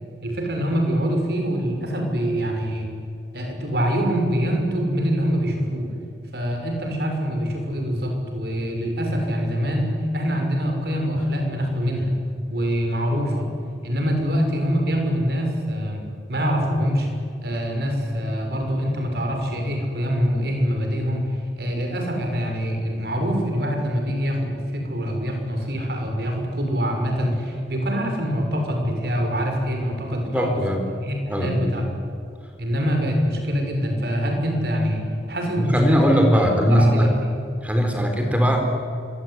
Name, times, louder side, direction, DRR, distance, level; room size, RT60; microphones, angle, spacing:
voice 1, 0.2-2.9 3.3-5.9 6.3-12.1 12.5-13.5 13.8-16.0 16.3-17.1 17.4-30.6 31.0-31.8 32.6-36.0 36.7-37.1, equal, 65° right, 3 dB, 6.2 m, -24 dB
voice 2, 30.3-30.8 31.3-31.9 35.6-37.1 37.6-38.6, equal, 10° right, 3 dB, 4.0 m, -19 dB
26.5 x 22.5 x 9.9 m, 2.4 s
head